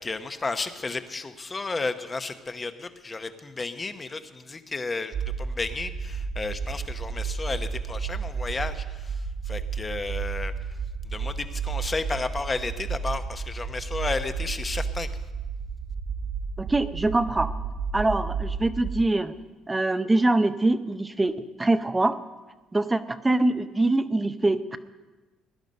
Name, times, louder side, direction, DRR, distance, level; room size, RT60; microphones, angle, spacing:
voice 1, 0.0-10.5 11.0-15.1, left 3 dB, 25° left, 9 dB, 0.9 m, -33 dB
sound 1, 5.1-19.0, right 5 dB, 55° right, 2.1 m, -32 dB
voice 2, 16.6-17.5 17.9-19.3 19.7-21.3 21.6-22.2 22.7-24.8, right 2 dB, 15° right, 11 dB, 0.6 m, -23 dB
17.5 x 11.0 x 5.3 m, 1.2 s
cardioid pair, 110°, 0 cm